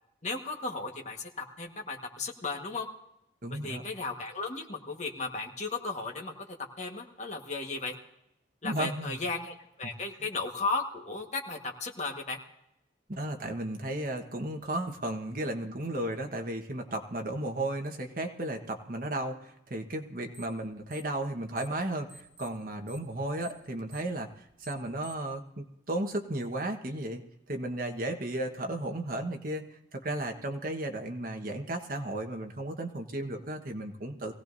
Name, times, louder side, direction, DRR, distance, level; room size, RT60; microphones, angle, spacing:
voice 1, 0.2-2.9 3.5-7.9 8.6-12.4, left 3 dB, 40° left, 1 dB, 1.5 m, -35 dB
voice 2, 3.4-3.8 8.6-9.2 13.1-34.3, right 1 dB, 50° right, 4 dB, 1.4 m, -34 dB
sound 1, 20.3-20.6 20.9-21.8 22.1-25.3, right 1 dB, 85° right, 3.4 m, -52 dB
23.0 x 17.0 x 2.7 m, 0.86 s
head